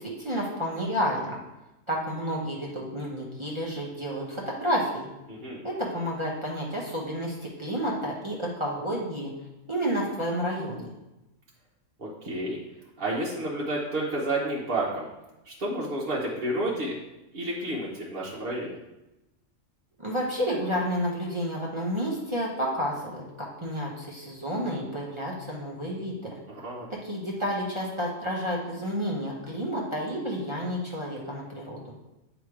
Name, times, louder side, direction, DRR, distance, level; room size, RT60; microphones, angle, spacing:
voice 1, 0.0-1.4 1.9-5.1 5.6-9.3 9.7-10.9 20.0-26.3 26.9-31.8, equal, 25° right, -4 dB, 1.0 m, -30 dB
voice 2, 5.3-5.6 12.0-12.6 13.0-15.1 15.4-17.0 17.3-18.8 26.5-26.9, right 1 dB, 45° right, -6 dB, 1.1 m, -30 dB
9.1 x 3.0 x 4.7 m, 0.98 s
omnidirectional pair, 1.4 m